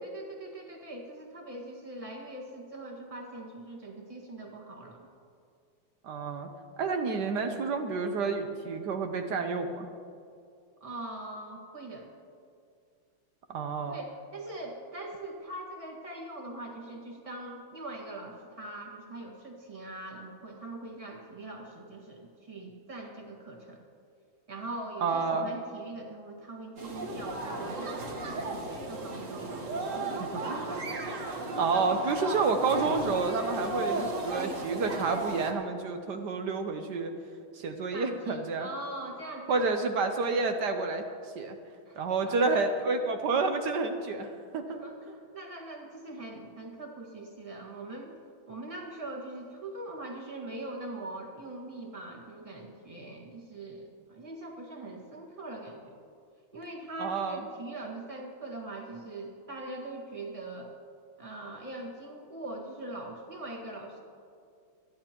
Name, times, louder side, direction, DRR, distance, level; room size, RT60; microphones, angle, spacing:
voice 1, 0.0-5.1 10.8-12.1 13.9-23.8 24.5-31.0 37.9-39.7 41.8-42.0 42.2-42.6 44.8-48.1 48.5-56.0 56.5-60.7 61.2-64.0, right 2 dB, 15° right, -1 dB, 1.6 m, -42 dB
voice 2, 6.0-6.5 6.8-9.9 13.5-14.0 25.0-25.5 30.3-30.7 31.5-37.1 37.5-38.7 39.5-41.6 42.0-44.8 57.0-57.4, right 4 dB, 65° right, 6 dB, 1.2 m, -29 dB
sound 1, 26.8-35.5, right 2 dB, 45° right, 1.4 m, -35 dB
28.0 x 10.0 x 3.0 m, 2.4 s
omnidirectional pair, 2.3 m